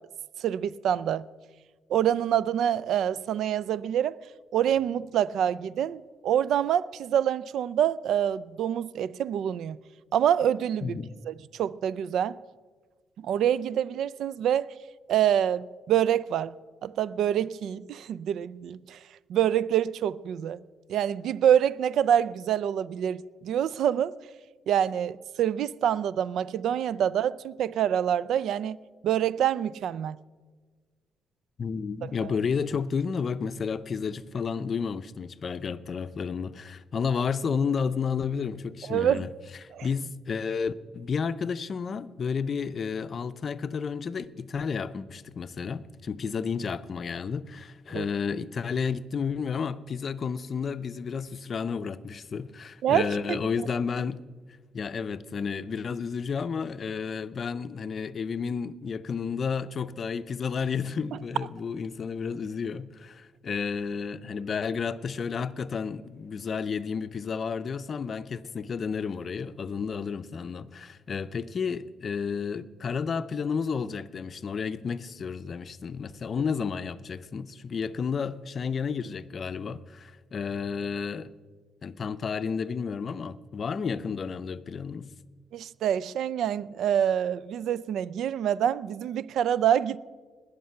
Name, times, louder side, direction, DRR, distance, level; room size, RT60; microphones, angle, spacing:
voice 1, 0.4-1.2 1.9-4.2 4.5-9.8 10.1-11.0 11.3-12.4 13.2-14.7 15.1-16.5 16.8-19.0 19.3-20.6 20.9-23.2 23.4-24.1 24.7-28.8 29.0-30.2 32.0-32.1 38.9-39.3 39.7-39.9 47.9-48.1 52.8-53.4 61.1-61.2 85.5-90.0, right 10 dB, 75° right, 0.3 m, -26 dB
voice 2, 10.8-11.1 31.6-39.3 39.6-54.2 54.7-81.3 81.8-85.1, left 6 dB, 45° left, 0.5 m, -31 dB
20.0 x 6.7 x 5.6 m
cardioid pair, 90°, 0 cm